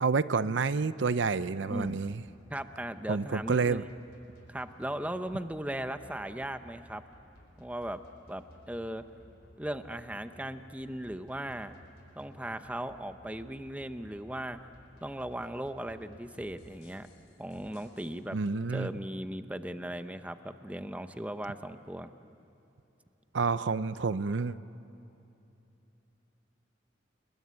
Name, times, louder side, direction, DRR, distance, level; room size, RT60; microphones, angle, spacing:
voice 1, 0.0-2.2 3.1-3.8 18.3-18.9 23.3-24.6, right 4 dB, 75° right, 15 dB, 0.6 m, -29 dB
sound 1, 1.7-18.1, equal, 55° left, 4.2 m, -57 dB
voice 2, 1.7-2.0 2.5-3.9 4.5-7.0 7.6-8.0 8.3-9.0 9.6-11.7 12.1-14.6 15.0-17.1 17.4-18.4 18.7-22.1, right 1 dB, 5° right, 9 dB, 0.7 m, -38 dB
29.5 x 21.0 x 9.5 m, 2.9 s
head